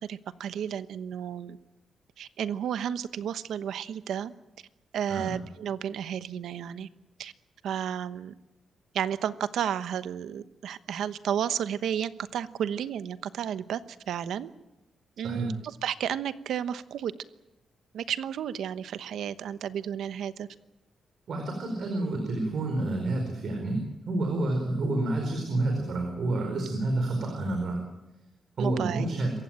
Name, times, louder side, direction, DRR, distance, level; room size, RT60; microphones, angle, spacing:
voice 1, 0.0-1.6 2.2-4.3 4.9-6.9 7.2-7.3 7.6-8.4 8.9-13.8 14.1-14.5 15.2-17.1 17.9-20.5 28.6-29.1, right 9 dB, 85° right, 13 dB, 1.0 m, -32 dB
voice 2, 21.3-23.8 24.1-27.8 28.6-29.3, right 2 dB, 55° right, 3 dB, 4.6 m, -29 dB
27.0 x 15.5 x 9.0 m, 0.97 s
wide cardioid pair, 155°, 0 cm